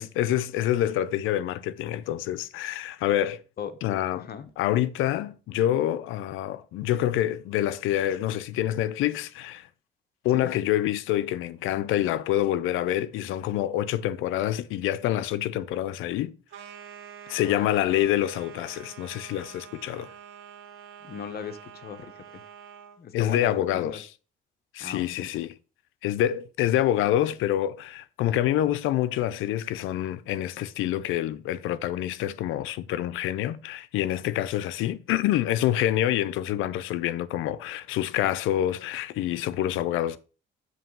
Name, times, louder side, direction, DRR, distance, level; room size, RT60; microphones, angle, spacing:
voice 1, 0.0-3.4 3.8-4.3 4.6-9.7 10.2-16.3 17.3-20.1 23.1-24.1 24.7-25.5 26.0-40.2, left 12 dB, 90° left, 0.5 m, -27 dB
voice 2, 4.2-4.5 10.3-10.5 17.4-17.7 21.0-22.4 23.0-24.0 24.8-25.3, left 7 dB, 50° left, 0.9 m, -38 dB
sound 1, 16.5-23.0, right 8 dB, 85° right, 1.0 m, -46 dB
7.4 x 3.2 x 5.3 m
cardioid pair, 90°, 20 cm